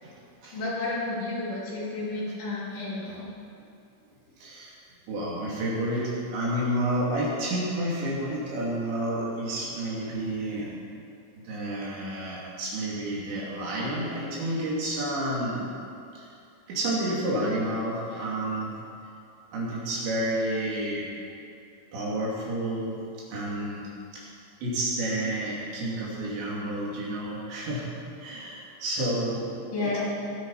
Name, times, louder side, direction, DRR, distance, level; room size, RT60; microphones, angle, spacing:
voice 1, 0.0-0.6 4.4-4.8 5.1-10.7 11.5-15.7 16.1-16.3 16.7-18.7 19.5-21.1 21.9-24.3 24.6-27.9 28.2-30.0, right 1 dB, 75° right, -5 dB, 5.4 m, -30 dB
voice 2, 0.5-3.3 29.7-30.0, left 2 dB, 90° left, -7 dB, 6.1 m, -31 dB
19.5 x 9.3 x 5.8 m, 2.6 s
omnidirectional pair, 5.1 m